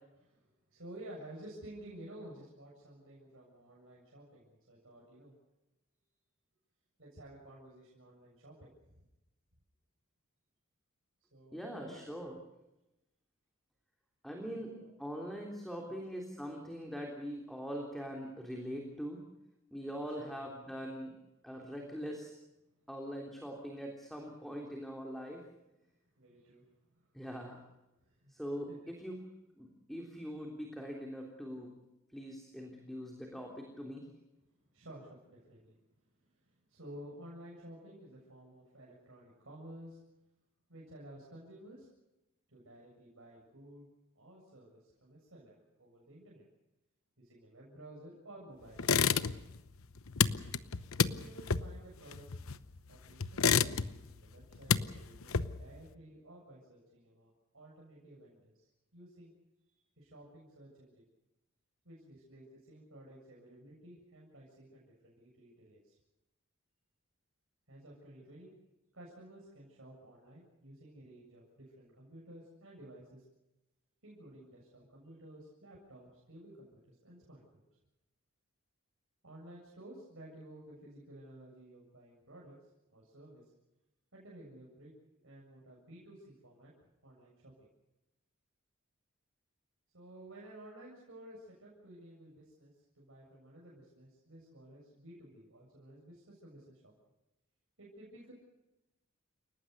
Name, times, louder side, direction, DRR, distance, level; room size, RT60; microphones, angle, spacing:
voice 1, 0.2-5.3 7.0-9.0 11.3-12.1 14.5-14.9 15.8-16.0 19.9-20.3 26.2-27.1 28.0-28.4 28.7-28.8 34.7-35.8 36.3-40.0 40.7-41.9 42.5-43.9 44.2-46.4 47.2-48.9 51.0-52.3 52.9-59.3 59.7-61.0 61.8-66.0 67.7-68.5 68.9-73.2 74.0-77.6 79.2-82.6 82.9-83.4 84.1-84.9 85.2-86.7 87.0-87.5 89.9-96.9 97.8-98.3, right 1 dB, 70° right, -3 dB, 7.4 m, -53 dB
voice 2, 11.5-12.3 14.2-14.7 15.0-19.2 19.7-21.1 21.4-22.3 22.9-25.4 27.1-27.6 28.3-29.2 29.6-31.7 32.1-34.1, equal, ahead, 0 dB, 3.4 m, -42 dB
sound 1, 48.8-49.6 49.8-52.8 53.2-54.1 54.4-55.8, left 6 dB, 75° left, 0.9 m, -30 dB
29.5 x 18.5 x 6.7 m, 0.95 s
head